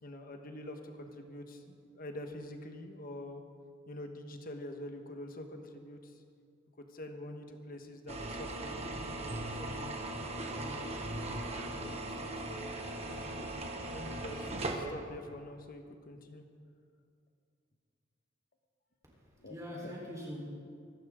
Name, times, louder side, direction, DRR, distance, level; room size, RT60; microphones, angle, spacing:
voice 1, 0.0-3.4 3.9-6.2 6.8-11.0 11.5-12.7 13.0-13.4 13.9-16.4 19.4-19.6 19.8-19.9, left 1 dB, 50° left, 5 dB, 1.3 m, -46 dB
sound 1, 8.1-14.8, right 2 dB, 35° right, 1.5 m, -39 dB
voice 2, 19.0-20.4, equal, 15° right, -4 dB, 3.9 m, -44 dB
24.0 x 12.0 x 3.7 m, 2.3 s
head